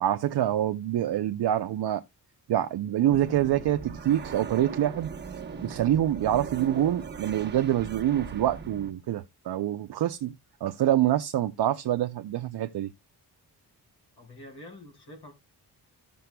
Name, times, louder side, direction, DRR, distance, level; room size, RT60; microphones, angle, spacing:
voice 1, 0.0-2.0 2.5-5.1 5.6-10.3 10.6-12.9, right 12 dB, 65° right, 0.6 m, -26 dB
sound 1, 3.1-8.9, right 5 dB, 25° right, 1.2 m, -39 dB
voice 2, 14.2-15.3, left 1 dB, 70° left, 4.0 m, -46 dB
15.0 x 6.9 x 2.2 m
wide cardioid pair, 120°, 41 cm